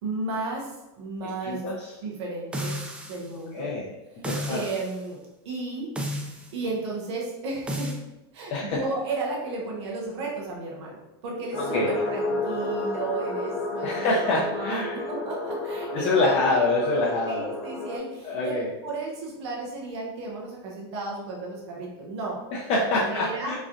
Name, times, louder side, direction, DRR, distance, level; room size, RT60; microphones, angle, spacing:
voice 1, 0.0-1.6 2.0-2.8 3.0-3.7 4.2-5.9 6.5-7.9 8.3-16.6 17.0-18.6 18.8-22.4 23.0-23.5, right 3 dB, 75° right, -2 dB, 0.8 m, -34 dB
voice 2, 1.4-1.9 3.5-3.9 4.2-4.6 8.5-8.8 11.7-11.9 13.8-15.0 15.9-17.5 18.2-18.7 22.5-23.6, left 2 dB, 45° left, -4 dB, 0.6 m, -25 dB
sound 1, 2.5-3.3 4.2-4.9 6.0-6.5 7.7-8.0, equal, 10° right, 0.4 m, -32 dB
sound 2, 11.5-18.0, left 2 dB, 65° left, 1.0 m, -31 dB
3.1 x 2.5 x 2.4 m, 0.97 s
supercardioid pair, 115°, 14 cm